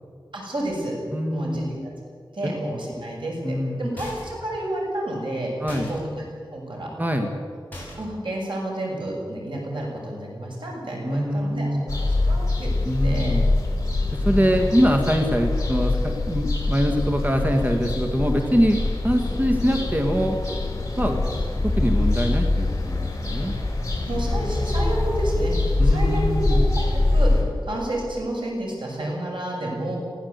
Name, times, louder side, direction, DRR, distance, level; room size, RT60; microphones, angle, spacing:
voice 1, 0.3-0.9 1.3-1.9 2.3-6.2 6.5-6.9 8.0-12.7 13.0-13.4 14.3-14.7 24.0-25.5 25.8-30.0, right 1 dB, 80° right, -2 dB, 6.8 m, -30 dB
voice 2, 1.1-1.7 2.4-2.6 3.4-3.9 5.6-5.9 7.0-7.3 11.0-11.9 12.9-13.5 14.1-20.4 21.0-21.2 21.6-23.5 25.8-26.7, equal, 20° right, 3 dB, 1.9 m, -23 dB
sound 1, 4.0-4.5 5.7-6.0 7.7-8.2, left 1 dB, 20° left, 7.4 m, -38 dB
sound 2, 11.9-27.4, left 2 dB, 40° left, 5.2 m, -24 dB
20.0 x 16.0 x 8.2 m, 2.1 s
wide cardioid pair, 75°, 8 cm